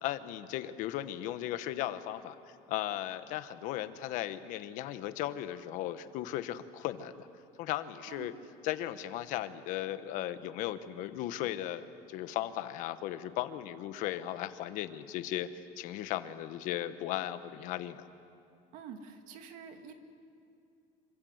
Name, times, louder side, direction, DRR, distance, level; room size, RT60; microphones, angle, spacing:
voice 1, 0.0-2.4 2.7-7.3 7.6-8.3 8.6-18.1, left 13 dB, 65° left, 11 dB, 1.3 m, -36 dB
voice 2, 18.7-19.9, right 6 dB, 60° right, 6 dB, 2.3 m, -47 dB
27.0 x 25.5 x 8.1 m, 2.6 s
cardioid pair, 170°, 15 cm